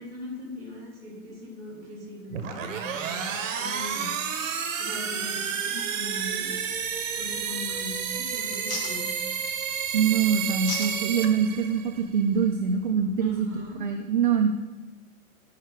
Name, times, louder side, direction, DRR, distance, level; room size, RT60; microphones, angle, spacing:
voice 1, 0.0-4.1 4.8-6.6 7.1-9.2 13.2-13.8, left 2 dB, 5° right, -3 dB, 2.7 m, -40 dB
sound 1, 2.3-12.0, right 7 dB, 60° right, 1.1 m, -31 dB
sound 2, 6.4-13.7, left 2 dB, 70° left, 2.8 m, -43 dB
voice 2, 9.9-13.5 13.8-14.5, right 7 dB, 40° right, 2 dB, 0.6 m, -24 dB
10.0 x 5.6 x 4.9 m, 1.1 s
hypercardioid pair, 170°, 42 cm